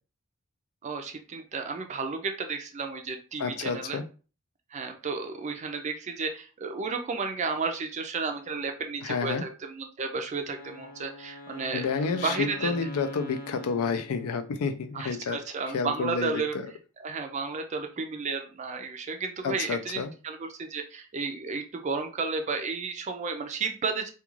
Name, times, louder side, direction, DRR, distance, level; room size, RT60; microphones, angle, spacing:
voice 1, 0.8-4.0 4.7-12.7 14.9-16.5 17.0-24.1, right 4 dB, 30° right, 5 dB, 0.3 m, -33 dB
voice 2, 3.4-4.0 9.0-9.4 11.7-15.4 15.7-16.6 19.4-20.1, left 5 dB, 80° left, 9 dB, 0.4 m, -30 dB
Wind instrument woodwind instrument, 10.5-14.7, equal, 35° left, 0.6 m, -43 dB
2.4 x 2.2 x 3.0 m, 0.35 s
head